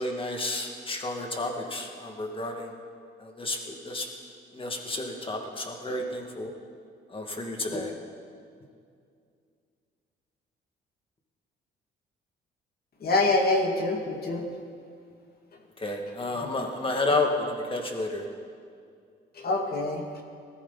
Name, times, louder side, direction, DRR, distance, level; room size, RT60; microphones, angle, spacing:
voice 1, 0.0-2.7 3.2-4.1 4.5-6.5 7.1-7.9 15.8-18.2, left 2 dB, 25° left, 2 dB, 2.3 m, -31 dB
voice 2, 13.0-14.4 19.4-20.2, left 2 dB, 50° left, 1 dB, 2.4 m, -25 dB
20.0 x 14.0 x 4.2 m, 2.3 s
cardioid pair, 90°, 20 cm